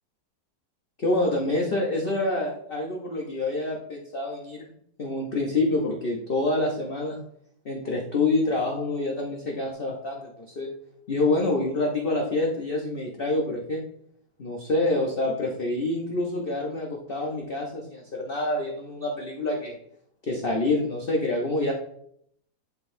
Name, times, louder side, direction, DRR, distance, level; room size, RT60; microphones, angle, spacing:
voice 1, 1.0-4.7 5.0-7.2 7.6-10.7 11.1-13.8 14.4-19.8 20.3-21.7, left 2 dB, 50° left, -1 dB, 0.7 m, -27 dB
11.0 x 3.9 x 2.6 m, 0.70 s
omnidirectional pair, 2.1 m